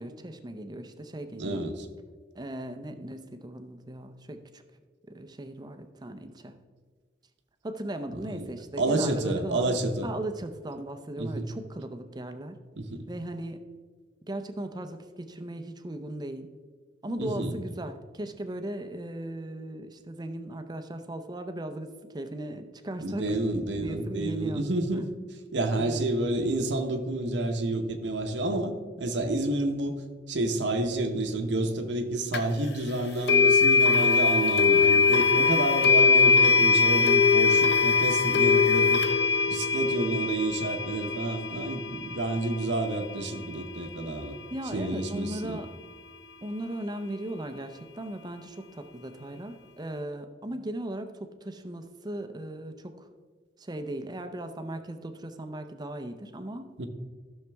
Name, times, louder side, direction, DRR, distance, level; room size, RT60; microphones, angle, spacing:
voice 1, 0.0-1.6 2.3-4.6 5.1-6.6 7.6-12.6 13.1-13.6 14.3-16.5 17.0-23.5 23.8-24.7 24.9-25.0 25.7-26.0 44.5-45.7 46.4-53.1 53.6-56.7, right 1 dB, 25° right, 8 dB, 0.6 m, -37 dB
voice 2, 1.4-1.9 8.3-8.5 8.8-10.1 11.2-11.5 12.8-13.0 17.2-17.5 23.0-25.1 25.5-39.0 39.5-44.4 44.7-45.6 56.8-56.9, right 2 dB, 75° right, 5 dB, 0.9 m, -29 dB
sound 1, 32.3-32.4 33.3-44.3, left 5 dB, 65° left, 0.7 m, -22 dB
13.5 x 6.5 x 3.5 m, 1.5 s
head